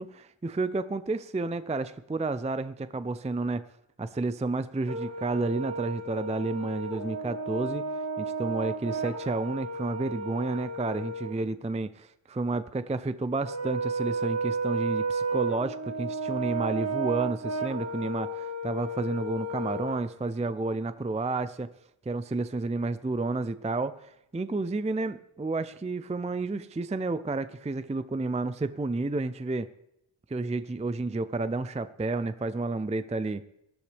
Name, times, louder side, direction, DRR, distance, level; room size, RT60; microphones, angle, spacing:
voice 1, 0.0-3.6 4.0-7.9 8.2-21.7 22.1-29.7 30.3-33.4, right 3 dB, 15° right, 13 dB, 0.5 m, -31 dB
Brass instrument, 4.9-11.3 13.5-20.0, right 3 dB, 30° right, 1.7 m, -33 dB
19.0 x 11.5 x 3.4 m, 0.83 s
wide cardioid pair, 50°, 49 cm